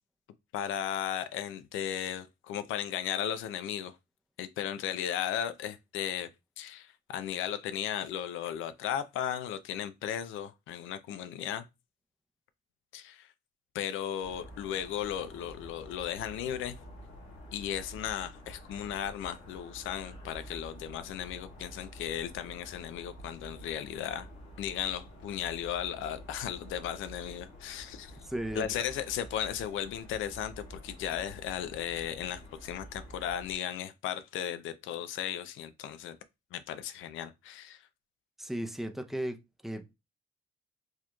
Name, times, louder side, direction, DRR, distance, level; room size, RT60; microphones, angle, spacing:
voice 1, 0.5-4.0 4.4-6.3 6.6-11.6 12.9-13.3 13.7-16.8 17.5-24.3 24.6-28.2 28.5-36.2 36.5-37.8, left 10 dB, 85° left, 0.5 m, -36 dB
sound 1, 14.2-33.6, equal, 65° left, 1.8 m, -49 dB
voice 2, 28.2-28.7 38.4-39.4 39.6-39.9, right 1 dB, ahead, 0.6 m, -35 dB
4.6 x 3.0 x 2.3 m
cardioid pair, 90°, 20 cm